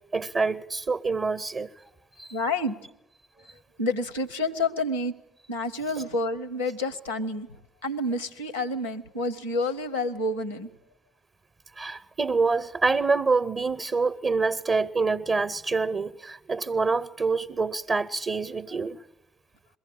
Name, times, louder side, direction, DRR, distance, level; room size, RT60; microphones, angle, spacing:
voice 1, 0.1-1.7 2.2-2.3 11.8-19.0, right 4 dB, 35° right, 0.7 m, -26 dB
voice 2, 2.3-2.8 3.8-5.1 5.5-7.5 7.8-10.7, left 2 dB, 90° left, 0.7 m, -29 dB
22.0 x 15.5 x 8.7 m
figure-of-eight pair, 50°, 0 cm